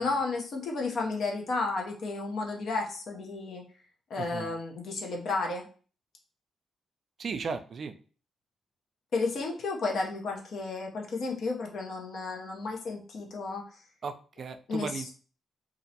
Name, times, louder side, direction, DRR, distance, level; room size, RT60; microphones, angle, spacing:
voice 1, 0.0-3.6 4.1-5.7 9.1-13.6 14.7-15.1, left 3 dB, 65° left, 1 dB, 0.7 m, -32 dB
voice 2, 4.2-4.5 7.2-7.9 14.0-15.1, right 5 dB, 55° right, 9 dB, 0.3 m, -36 dB
2.5 x 2.1 x 2.7 m, 0.39 s
cardioid pair, 75°, 0 cm